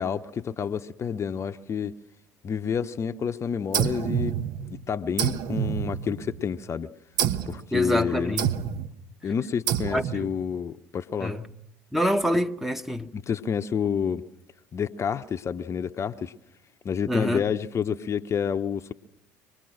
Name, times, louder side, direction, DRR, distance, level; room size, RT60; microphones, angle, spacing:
voice 1, 0.0-2.0 2.4-4.3 4.7-6.9 7.5-8.4 9.2-11.4 13.1-14.2 14.7-16.3 16.8-18.9, left 7 dB, 35° left, 0.8 m, -29 dB
sound 1, 3.7-4.8 5.2-6.5 7.2-7.6 8.4-8.9 9.7-10.3, right 9 dB, 60° right, 1.2 m, -27 dB
voice 2, 7.7-8.5 9.9-10.3 11.2-11.5 11.9-13.1 17.1-17.4, equal, 5° right, 1.1 m, -26 dB
25.0 x 20.0 x 6.5 m
hypercardioid pair, 65°, 8 cm